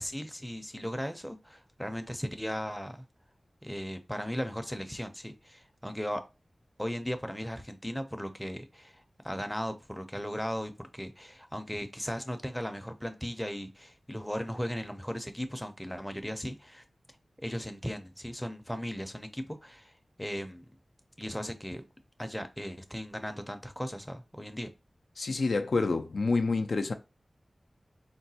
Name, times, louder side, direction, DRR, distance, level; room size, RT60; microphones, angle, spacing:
voice 1, 0.0-3.1 3.6-6.2 6.8-16.8 17.4-19.9 20.2-20.7 21.2-21.8 22.2-24.7, equal, 5° left, 0.5 m, -37 dB
voice 2, 25.2-26.9, left 3 dB, 85° left, 0.3 m, -28 dB
3.9 x 2.2 x 2.7 m
wide cardioid pair, 75°, 0 cm